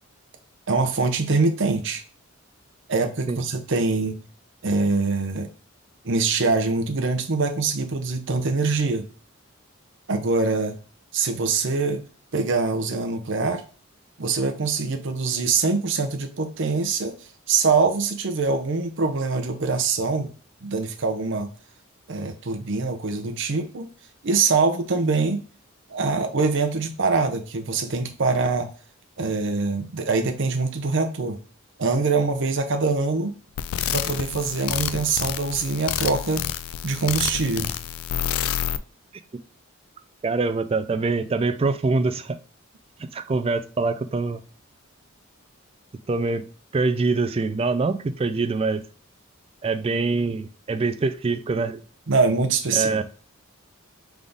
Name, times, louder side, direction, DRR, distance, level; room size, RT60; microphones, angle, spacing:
voice 1, 0.7-2.0 2.9-4.2 4.6-5.5 6.0-9.1 10.1-10.7 11.1-12.0 12.3-13.6 14.2-20.3 20.6-21.5 22.1-23.9 24.2-25.4 25.9-28.7 29.2-31.4 31.8-33.3 33.9-36.4 36.8-37.7 52.1-52.9, right 4 dB, 60° right, 0.7 m, -24 dB
sound 1, 33.6-38.8, left 10 dB, 85° left, 0.3 m, -28 dB
voice 2, 40.2-42.4 43.0-44.4 46.1-48.9 49.6-51.8 52.7-53.0, right 3 dB, 25° right, 0.3 m, -24 dB
3.9 x 3.5 x 3.5 m
head